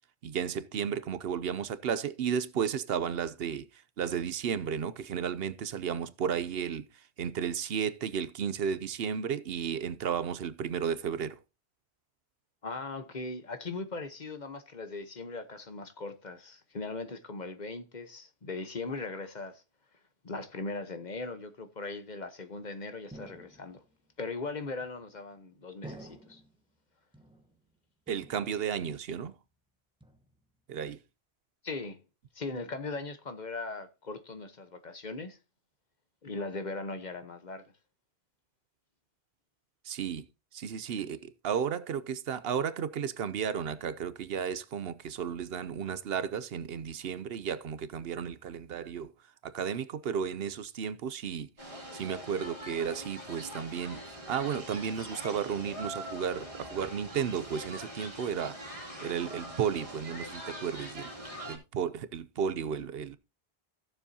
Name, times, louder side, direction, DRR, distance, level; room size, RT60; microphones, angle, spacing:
voice 1, 0.2-6.9 7.2-11.4 28.1-29.3 30.7-31.0 39.8-40.3 40.5-49.1 49.4-51.5 51.9-58.6 59.0-61.1 61.4-63.2, right 7 dB, 70° right, 0.9 m, -33 dB
voice 2, 12.6-19.6 20.2-23.8 24.2-26.4 31.6-32.0 32.3-35.4 36.2-37.6, left 3 dB, 45° left, 1.1 m, -39 dB
sound 1, 23.1-24.0 24.8-25.3 25.8-26.6 27.1-27.8 28.1-28.8 29.1-29.6 30.0-30.6, right 1 dB, 5° right, 1.0 m, -51 dB
sound 2, 51.6-61.6, equal, 30° right, 2.9 m, -43 dB
15.5 x 7.0 x 2.7 m
omnidirectional pair, 1.1 m